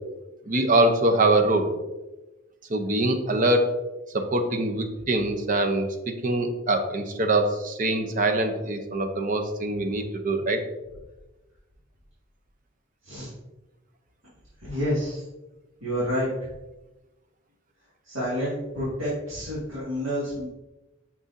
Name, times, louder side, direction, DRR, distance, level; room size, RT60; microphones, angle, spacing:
voice 1, 0.5-1.7 2.7-3.6 4.1-10.6, right 2 dB, 40° right, 6 dB, 0.7 m, -23 dB
voice 2, 14.6-15.2 15.8-16.3 18.0-20.5, equal, 80° right, -9 dB, 2.2 m, -29 dB
6.3 x 6.1 x 2.6 m, 1.1 s
head